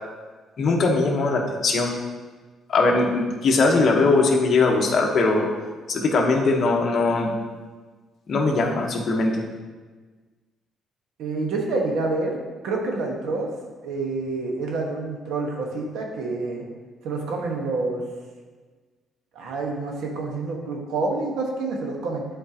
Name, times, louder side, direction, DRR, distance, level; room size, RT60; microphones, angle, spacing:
voice 1, 0.6-1.9 2.7-5.5 5.9-7.3 8.3-9.4, left 3 dB, 45° left, 0 dB, 1.1 m, -20 dB
voice 2, 11.2-12.4 12.6-13.5 13.8-16.6 17.0-18.0 19.3-22.2, right 3 dB, 85° right, 1 dB, 1.3 m, -27 dB
11.0 x 4.4 x 2.9 m, 1.4 s
cardioid pair, 135°, 0 cm